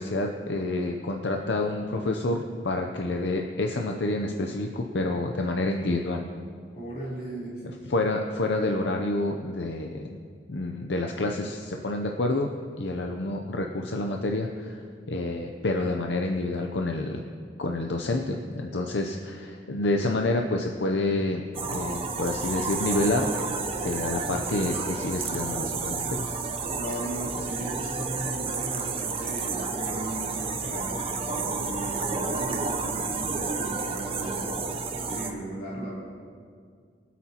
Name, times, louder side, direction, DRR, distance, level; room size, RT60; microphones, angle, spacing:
voice 1, 0.0-6.2 7.9-10.0 10.5-12.5 12.8-14.8 15.1-17.2 17.6-23.5 23.8-26.4, left 2 dB, 70° left, 2 dB, 0.7 m, -28 dB
voice 2, 6.7-7.7 26.7-35.9, right 1 dB, 45° left, -7 dB, 3.6 m, -37 dB
sound 1, 21.5-35.3, right 4 dB, 30° right, 0.7 m, -31 dB
23.5 x 8.4 x 2.9 m, 2.1 s
head